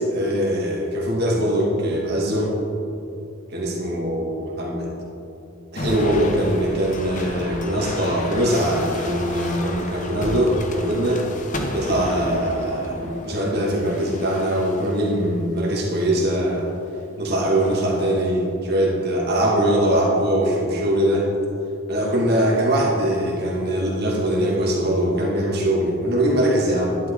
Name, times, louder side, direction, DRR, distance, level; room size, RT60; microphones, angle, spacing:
voice 1, 0.0-2.5 3.5-4.9 5.7-11.3 11.7-16.7 17.2-21.3 21.9-27.0, right 1 dB, 50° right, -3 dB, 2.2 m, -22 dB
sound 1, 5.8-15.1 15.8-16.3 17.4-18.1, left 1 dB, 35° left, 1.0 m, -32 dB
11.5 x 11.0 x 4.0 m, 2.7 s
head